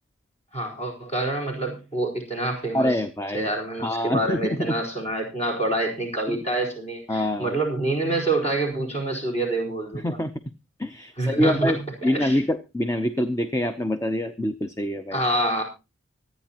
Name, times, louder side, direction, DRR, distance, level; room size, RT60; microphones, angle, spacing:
voice 1, 0.5-3.0 3.3-10.2 11.2-11.7 12.0-12.4 15.1-15.6, right 2 dB, 30° left, 0 dB, 4.3 m, -27 dB
voice 2, 2.7-3.5 3.8-4.8 6.3-6.4 7.1-7.5 9.9-10.3 10.8-15.2, left 1 dB, 15° left, 9 dB, 0.6 m, -25 dB
25.0 x 9.1 x 2.9 m, 0.29 s
head